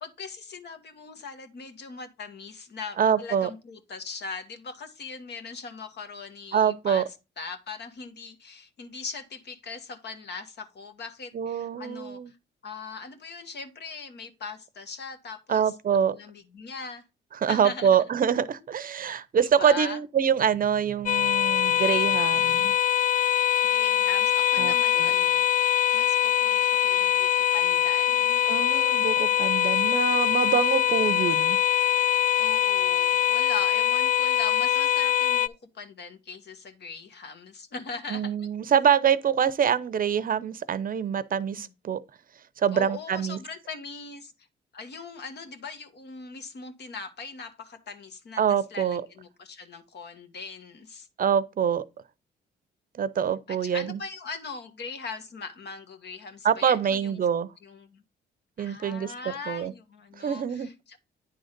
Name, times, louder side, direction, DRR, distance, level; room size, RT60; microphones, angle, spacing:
voice 1, 0.0-7.1 7.4-12.4 12.6-17.0 17.5-18.0 19.4-20.0 22.3-22.7 23.7-25.4 25.9-28.4 32.4-38.5 41.6-41.7 42.7-44.3 44.7-48.4 48.7-51.1 53.5-57.2 57.6-58.0 58.6-61.0, left 4 dB, 55° left, 1.5 m, -40 dB
voice 2, 3.0-3.5 6.5-7.0 11.3-12.3 15.5-16.2 17.3-22.7 24.6-25.1 28.5-31.6 38.1-42.0 42.6-43.4 48.4-49.0 51.2-51.8 53.0-54.0 56.4-57.5 58.6-59.7 60.2-60.7, right 8 dB, 45° right, 0.7 m, -25 dB
sound 1, 21.1-35.5, left 11 dB, 40° left, 0.4 m, -23 dB
9.5 x 3.9 x 5.1 m
cardioid pair, 90°, 20 cm